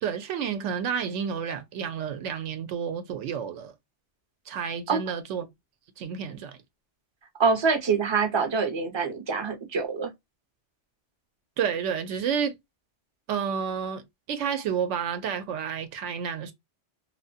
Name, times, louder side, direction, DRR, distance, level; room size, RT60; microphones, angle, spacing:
voice 1, 0.0-3.7 4.5-5.5 6.0-6.6 11.6-12.6 13.3-16.5, right 7 dB, 80° right, 0.9 m, -30 dB
voice 2, 7.4-10.1, right 5 dB, 35° right, 0.5 m, -25 dB
2.9 x 2.1 x 2.6 m
omnidirectional pair, 1.2 m